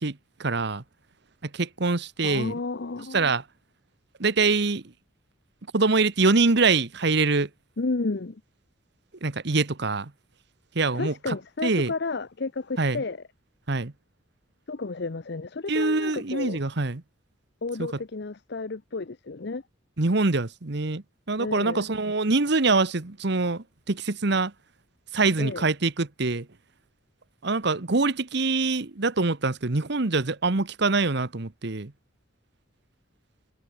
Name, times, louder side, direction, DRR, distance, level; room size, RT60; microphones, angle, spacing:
voice 1, 0.0-0.8 1.4-2.5 3.1-3.4 4.2-4.8 5.7-7.5 9.2-10.1 10.7-11.3 11.6-11.9 12.8-13.0 13.7-13.9 15.7-17.0 20.0-24.5 25.1-26.5 27.4-31.9, right 3 dB, 60° right, 1.2 m, -24 dB
voice 2, 2.2-3.3 7.8-8.4 10.9-13.2 14.7-16.6 17.6-19.6 21.4-21.8 25.4-25.6, left 3 dB, 60° left, 0.8 m, -32 dB
head